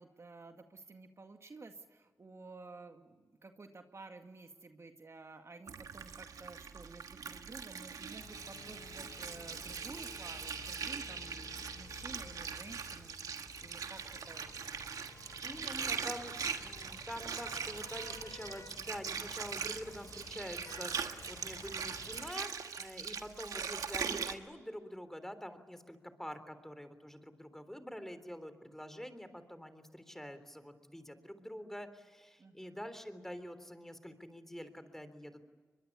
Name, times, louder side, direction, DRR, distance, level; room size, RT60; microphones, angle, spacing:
voice 1, 0.0-14.5 15.6-16.1 32.4-32.8, right 3 dB, 50° right, 6 dB, 2.0 m, -52 dB
Water, 5.7-24.3, right 6 dB, 80° right, 1.4 m, -41 dB
sound 1, 8.2-22.3, left 4 dB, 65° left, 1.1 m, -54 dB
voice 2, 15.4-16.3 16.6-35.4, equal, 5° left, 11 dB, 3.4 m, -46 dB
22.5 x 22.0 x 10.0 m, 1.4 s
supercardioid pair, 40°, 6 cm